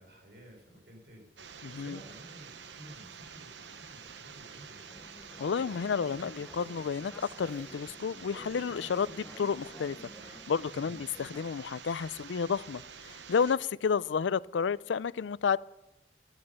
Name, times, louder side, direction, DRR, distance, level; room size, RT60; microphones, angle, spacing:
voice 1, 0.0-4.9 10.7-11.0, equal, 65° right, 1 dB, 4.7 m, -53 dB
sound 1, 1.4-13.6, right 6 dB, 80° right, 0.9 m, -48 dB
voice 2, 1.6-2.0 5.4-7.1 7.4-10.0 10.3-15.6, left 6 dB, 90° left, 20 dB, 0.4 m, -31 dB
Conversation / Chatter, 4.8-11.6, left 1 dB, 10° left, 0.8 m, -52 dB
14.0 x 12.5 x 5.6 m, 0.99 s
head